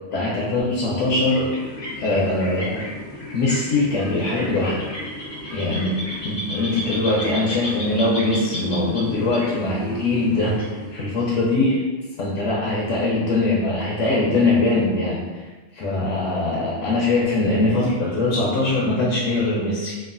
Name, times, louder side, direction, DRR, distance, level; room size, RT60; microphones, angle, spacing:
voice 1, 0.1-1.5 2.0-2.8 3.3-4.9 5.5-11.8 12.2-15.4 15.7-20.0, left 2 dB, 75° left, -5 dB, 0.9 m, -22 dB
sound 1, 1.0-11.4, equal, 25° left, 0.6 m, -33 dB
3.0 x 2.3 x 2.4 m, 1.3 s
omnidirectional pair, 1.3 m